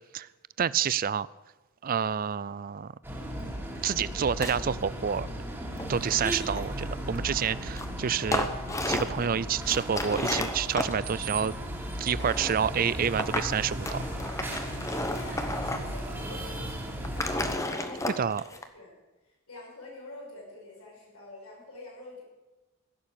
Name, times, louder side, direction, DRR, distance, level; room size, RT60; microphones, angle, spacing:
voice 1, 0.6-1.3 1.8-2.9 3.8-5.3 5.9-8.5 8.9-11.5 12.0-14.0 18.2-18.4, right 7 dB, 40° right, 19 dB, 0.4 m, -28 dB
sound 1, 3.0-17.6, right 1 dB, 10° right, 2.4 m, -36 dB
sound 2, 3.9-4.6 5.6-6.9 7.8-7.9 8.2-9.2 9.6-10.9 11.9-12.6 13.2-13.5 13.9-16.0 16.3-16.4 16.9-18.6, left 1 dB, 15° left, 1.0 m, -33 dB
voice 2, 14.8-18.4 18.7-22.2, left 2 dB, 85° left, -3 dB, 5.8 m, -47 dB
16.0 x 7.4 x 8.6 m, 1.1 s
head